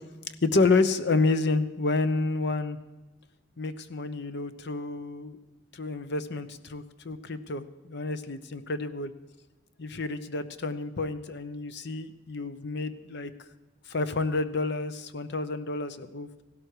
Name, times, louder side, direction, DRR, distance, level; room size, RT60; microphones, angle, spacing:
voice 1, 0.4-2.8 3.6-5.4 5.7-9.1 9.8-13.3 13.9-16.4, left 3 dB, 65° left, 12 dB, 0.9 m, -29 dB
16.0 x 12.5 x 4.9 m, 1.1 s
head